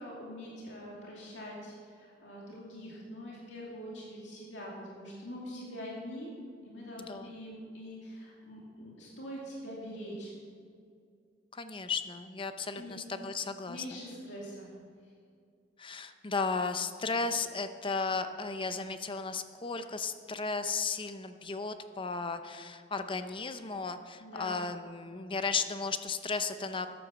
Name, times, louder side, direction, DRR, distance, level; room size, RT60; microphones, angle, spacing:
voice 1, 0.0-6.3 6.6-10.4 12.7-13.0 13.7-14.7 15.0-15.1 24.2-24.6, equal, 70° left, -4 dB, 2.5 m, -44 dB
voice 2, 11.5-13.8 15.8-26.9, left 4 dB, 25° left, 9 dB, 0.7 m, -35 dB
12.5 x 9.4 x 7.0 m, 2.3 s
head